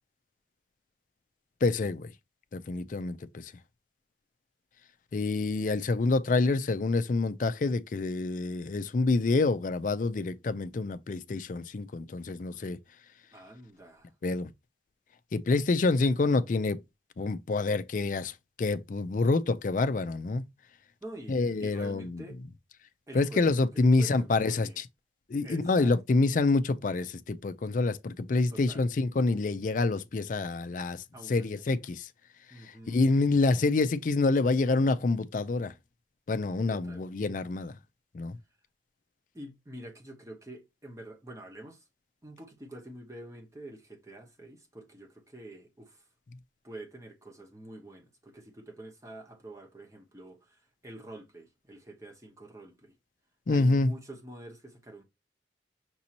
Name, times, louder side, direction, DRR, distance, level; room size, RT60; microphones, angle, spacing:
voice 1, 1.6-2.1 2.5-3.5 5.1-12.8 14.2-14.5 15.3-16.8 17.2-18.3 18.6-20.4 21.3-22.2 23.1-24.8 25.3-32.1 32.9-35.7 36.3-37.7 38.1-38.4 53.5-53.9, left 3 dB, 45° left, 0.4 m, -27 dB
voice 2, 13.3-14.1 21.0-22.4 23.1-24.8 25.4-26.2 28.5-28.9 31.1-31.5 32.5-33.0 36.7-37.0 39.3-41.8 42.2-46.0 46.6-52.9 53.5-55.0, right 1 dB, 15° right, 0.9 m, -47 dB
6.1 x 2.7 x 2.8 m
head